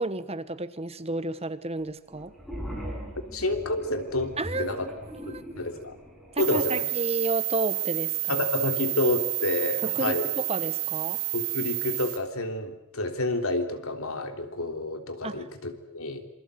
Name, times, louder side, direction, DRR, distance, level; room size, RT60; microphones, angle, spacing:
voice 1, 0.0-2.3 4.4-4.8 5.3-5.4 6.3-8.4 9.8-11.2 15.2-15.5, right 2 dB, 30° right, 13 dB, 1.2 m, -31 dB
sound 1, 2.1-6.5, equal, ahead, 7.8 m, -40 dB
voice 2, 3.3-4.9 5.3-6.0 6.4-6.8 8.3-10.3 11.3-16.3, left 2 dB, 80° left, 6 dB, 3.4 m, -29 dB
sound 2, 6.4-12.2, right 17 dB, 80° right, 3.4 m, -30 dB
27.5 x 23.5 x 8.1 m, 0.82 s
head